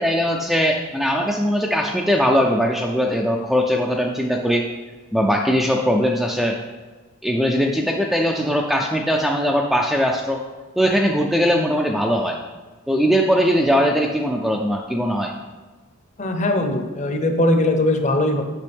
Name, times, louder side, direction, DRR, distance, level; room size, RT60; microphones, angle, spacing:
voice 1, 0.0-4.6 5.1-6.6 7.2-10.4 10.8-12.4 12.9-15.3, equal, ahead, 0 dB, 0.3 m, -20 dB
voice 2, 16.2-18.4, left 1 dB, 30° left, 5 dB, 0.7 m, -20 dB
8.3 x 6.1 x 3.5 m, 1.3 s
head